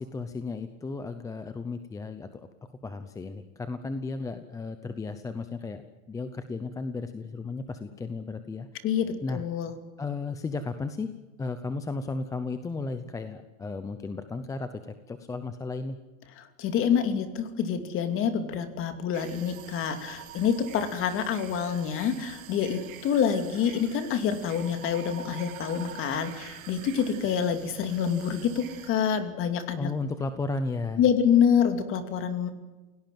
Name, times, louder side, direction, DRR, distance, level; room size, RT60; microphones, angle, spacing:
voice 1, 0.0-2.5 2.8-5.8 6.1-8.8 9.2-9.4 10.0-11.1 11.4-14.7 15.1-16.0 29.8-31.0, left 3 dB, 10° left, 10 dB, 0.7 m, -34 dB
voice 2, 8.8-9.8 16.4-29.9 31.0-32.5, left 8 dB, 30° left, 9 dB, 2.6 m, -27 dB
sound 1, 19.1-28.9, right 10 dB, 80° right, 3.6 m, -46 dB
28.5 x 17.5 x 7.7 m, 1.2 s
supercardioid pair, 160°, 40 cm